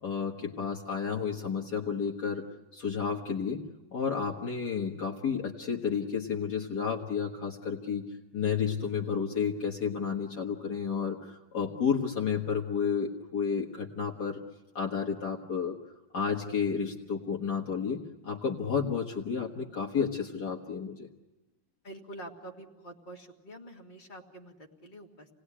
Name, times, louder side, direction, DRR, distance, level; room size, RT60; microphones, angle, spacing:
voice 1, 0.0-2.4 2.7-3.6 3.9-8.0 8.3-14.4 14.8-15.8 16.1-21.1, left 6 dB, 55° left, -1 dB, 1.9 m, -31 dB
voice 2, 21.8-25.3, right 1 dB, 25° left, 0 dB, 2.3 m, -47 dB
28.0 x 19.0 x 9.9 m, 1.1 s
omnidirectional pair, 2.2 m